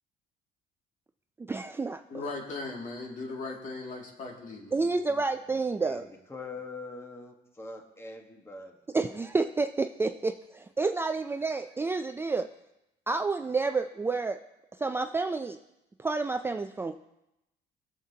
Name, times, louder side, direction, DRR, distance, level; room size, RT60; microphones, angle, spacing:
voice 1, 1.4-2.0 4.7-6.1 8.9-10.3 10.8-12.5 13.1-14.4 14.8-15.6 16.0-17.0, right 3 dB, 15° right, 7 dB, 0.3 m, -29 dB
voice 2, 2.1-4.9, left 3 dB, 50° left, 0 dB, 2.3 m, -38 dB
voice 3, 5.5-8.8, left 3 dB, 15° left, 3 dB, 1.4 m, -44 dB
18.0 x 7.3 x 2.8 m, 0.90 s
cardioid pair, 110°, 17 cm